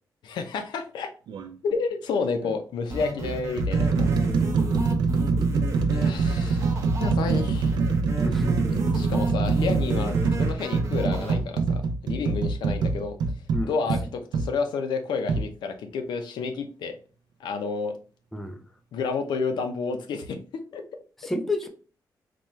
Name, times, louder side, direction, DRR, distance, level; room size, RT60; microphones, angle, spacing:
voice 1, 0.2-1.1 1.6-4.1 5.9-7.7 8.7-13.2 13.6-17.0 17.4-17.9 18.9-20.4 20.7-20.8, left 4 dB, 80° left, 6 dB, 0.6 m, -30 dB
sound 1, 1.3-1.5 2.4-2.6 3.2-14.5 15.3-15.5, right 4 dB, 75° right, 0.4 m, -24 dB
sound 2, 2.9-11.3, right 1 dB, 40° right, 0.7 m, -34 dB
voice 2, 8.2-8.6 13.5-13.7 18.3-18.6 21.2-21.7, left 1 dB, 5° left, 6 dB, 0.3 m, -30 dB
4.1 x 2.3 x 3.1 m, 0.37 s
wide cardioid pair, 180°, 7 cm